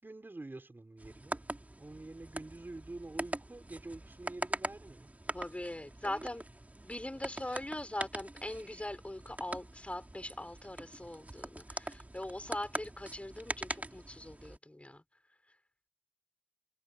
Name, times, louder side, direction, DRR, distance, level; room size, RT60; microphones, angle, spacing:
voice 1, 0.0-1.4 1.8-5.1 6.0-6.3, right 2 dB, 65° right, 6.0 m, -47 dB
sound 1, 1.0-14.6, right 1 dB, 45° right, 3.2 m, -43 dB
voice 2, 5.3-6.4 6.8-15.0, left 1 dB, 35° left, 7.1 m, -41 dB
wide cardioid pair, 50°, 4 cm